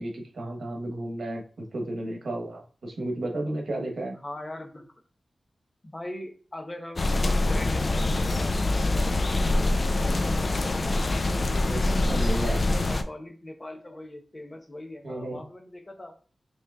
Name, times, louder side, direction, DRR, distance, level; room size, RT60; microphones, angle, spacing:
voice 1, 0.0-4.2 11.7-12.6 15.0-15.4, right 1 dB, 80° right, 1 dB, 1.0 m, -33 dB
voice 2, 4.2-4.9 5.8-7.1 7.4-10.4 11.0-12.3 12.6-16.1, left 1 dB, 30° left, 4 dB, 0.9 m, -41 dB
sound 1, 7.0-13.0, left 2 dB, 50° left, 0.4 m, -25 dB
5.5 x 3.0 x 2.4 m, 0.39 s
wide cardioid pair, 70°, 0 cm